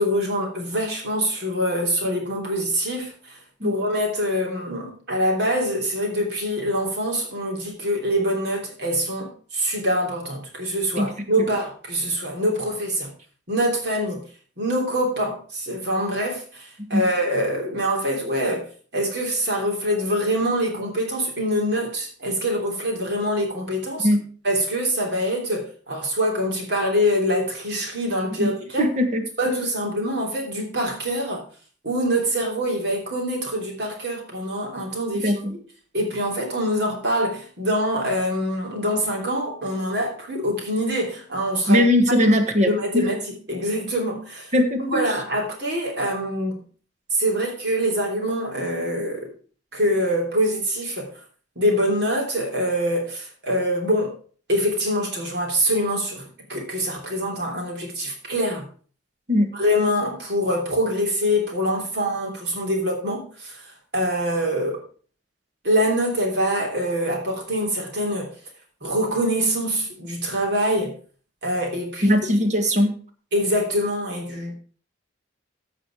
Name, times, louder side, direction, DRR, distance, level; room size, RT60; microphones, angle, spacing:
voice 1, 0.0-13.1 13.5-14.2 14.6-18.7 18.9-24.1 24.4-28.9 29.4-31.4 31.8-35.6 35.9-41.8 42.2-42.4 42.7-44.5 44.8-46.6 47.1-49.3 49.7-51.1 51.5-54.1 54.5-58.7 59.5-64.8 65.6-68.3 68.8-70.9 71.4-72.2 73.3-74.5, equal, 60° right, 0 dB, 3.2 m, -24 dB
voice 2, 11.0-11.5 16.9-17.0 24.0-24.2 28.3-28.5 28.8-29.6 35.2-35.5 41.7-43.1 44.5-45.0 59.3-59.5 72.0-72.9, left 1 dB, 35° right, 6 dB, 1.5 m, -20 dB
15.0 x 5.0 x 4.9 m, 0.43 s
head